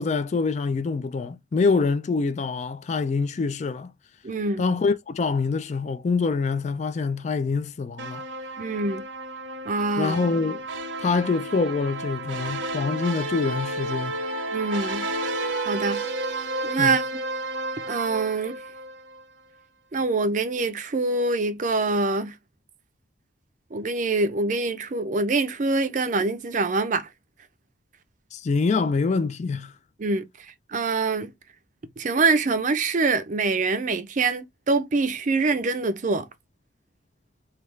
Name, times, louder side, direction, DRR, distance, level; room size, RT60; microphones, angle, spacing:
voice 1, 0.0-3.9 4.6-8.2 10.0-10.6 11.0-14.2 16.8-17.0 28.3-29.7, left 4 dB, 35° left, 0.3 m, -25 dB
voice 2, 4.2-4.6 8.6-9.0 9.7-10.2 14.5-15.1 15.7-16.0 16.6-17.0 17.9-18.6 19.9-22.3 23.7-27.1 30.0-30.2 30.7-31.3 32.0-36.3, right 3 dB, 40° right, 0.5 m, -24 dB
sound 1, 8.0-19.2, right 2 dB, 80° right, 0.7 m, -32 dB
3.3 x 2.4 x 3.0 m
head